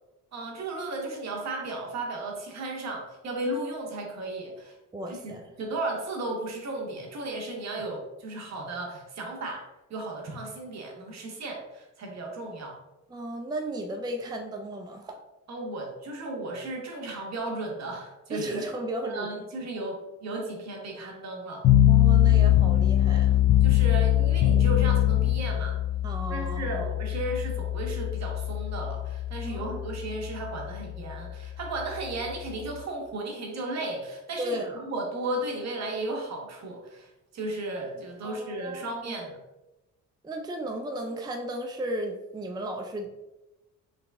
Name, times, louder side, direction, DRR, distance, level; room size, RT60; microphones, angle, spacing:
voice 1, 0.3-4.7 5.1-5.3 5.6-12.8 15.5-18.7 19.1-21.7 23.6-25.8 26.3-39.4, right 2 dB, 60° right, 0 dB, 1.2 m, -35 dB
voice 2, 4.9-5.5 7.7-7.8 13.1-15.2 18.3-19.3 21.8-23.4 26.0-26.9 29.4-29.8 34.4-34.8 38.2-39.1 40.2-43.1, right 1 dB, 15° right, 3 dB, 0.4 m, -35 dB
sound 1, 21.6-32.8, left 12 dB, 50° left, 0.5 m, -23 dB
4.0 x 3.4 x 3.5 m, 1.0 s
cardioid pair, 90°, 30 cm